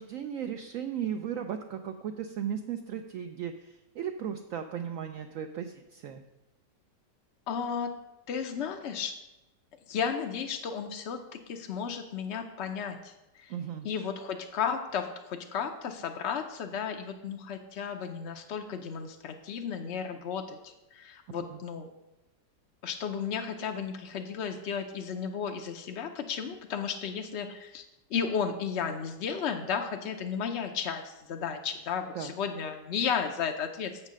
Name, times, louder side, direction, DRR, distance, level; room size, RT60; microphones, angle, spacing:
voice 1, 0.0-6.2 13.5-13.9 21.5-21.6 32.1-32.3, right 8 dB, 75° right, 6 dB, 0.7 m, -36 dB
voice 2, 7.5-7.9 8.3-9.1 9.9-13.5 13.8-21.9 22.8-27.8 28.1-34.0, left 6 dB, 65° left, 4 dB, 0.6 m, -34 dB
7.4 x 6.5 x 6.2 m, 0.97 s
omnidirectional pair, 1.9 m